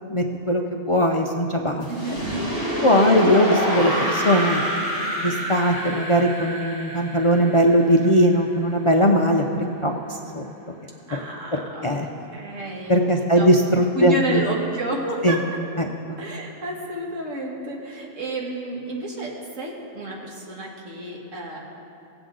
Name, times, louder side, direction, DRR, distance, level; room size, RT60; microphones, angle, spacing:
voice 1, 0.1-1.9 2.8-4.6 5.2-10.4 11.8-12.1 12.9-14.4 15.2-15.4 15.8-16.2, equal, 55° left, 2 dB, 0.3 m, -20 dB
sound 1, 1.8-8.7, equal, 45° right, 2.4 m, -27 dB
voice 2, 1.9-2.2 11.1-12.0 12.3-15.4 16.2-21.6, right 2 dB, 70° right, -2 dB, 1.9 m, -31 dB
18.0 x 7.9 x 3.9 m, 2.8 s
omnidirectional pair, 1.3 m